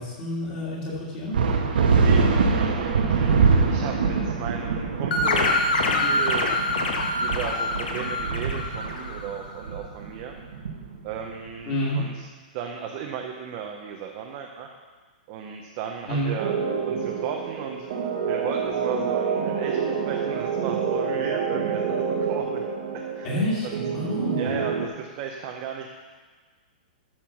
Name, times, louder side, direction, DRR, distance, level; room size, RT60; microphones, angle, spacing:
voice 1, 0.0-1.3 11.7-12.0 16.1-16.3 23.2-23.7 23.9-24.5, equal, 25° left, -6 dB, 2.0 m, -28 dB
sound 1, 1.3-11.3, right 4 dB, 90° right, 1.4 m, -24 dB
voice 2, 2.0-6.5 7.2-10.3 11.0-12.3 12.5-14.7 15.3-16.5 16.8-18.0 18.3-22.6 23.1-23.3 23.6-23.8 24.4-25.9, right 7 dB, 25° right, 2 dB, 0.6 m, -35 dB
sound 2, 5.1-9.4, left 2 dB, 70° left, 1.4 m, -25 dB
sound 3, 16.4-24.9, right 6 dB, 45° right, 1.2 m, -27 dB
13.0 x 4.4 x 5.8 m, 1.5 s
hypercardioid pair, 175°, 5 cm